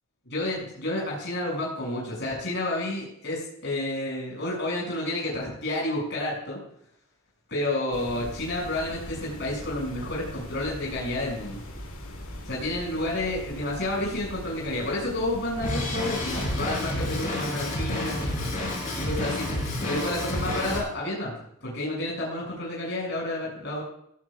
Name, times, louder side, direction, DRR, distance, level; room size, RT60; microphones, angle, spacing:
voice 1, 0.2-6.6 7.5-11.6 12.4-18.2 18.9-21.3 21.6-23.8, left 1 dB, 55° left, -3 dB, 6.8 m, -30 dB
sound 1, 7.9-16.9, left 1 dB, 80° left, 4.7 m, -41 dB
Drum kit, 15.6-20.8, left 1 dB, 40° left, 7.3 m, -29 dB
17.5 x 16.5 x 2.5 m, 0.69 s
head